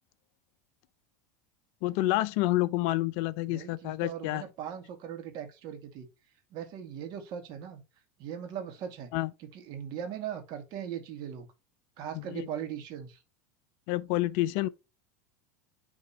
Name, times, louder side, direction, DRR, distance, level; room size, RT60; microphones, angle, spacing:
voice 1, 1.8-4.4 9.1-9.3 12.1-12.5 13.9-14.7, left 17 dB, 60° left, 0.5 m, -28 dB
voice 2, 3.5-6.1 6.5-7.8 8.2-9.1 9.4-11.5 12.0-13.2, right 9 dB, 55° right, 2.0 m, -39 dB
10.0 x 3.5 x 2.9 m
supercardioid pair, 110°, 9 cm